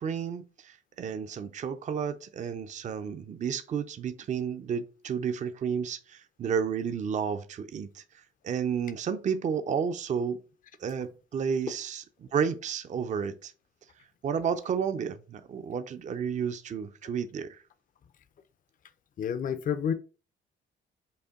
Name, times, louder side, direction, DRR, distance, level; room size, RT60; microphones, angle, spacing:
voice 1, 0.0-8.0 8.4-10.4 10.8-13.5 14.2-17.6, right 7 dB, 40° right, 0.4 m, -31 dB
voice 2, 19.2-19.9, left 8 dB, 45° left, 0.5 m, -29 dB
5.3 x 2.2 x 3.6 m
cardioid pair, 90°, 20 cm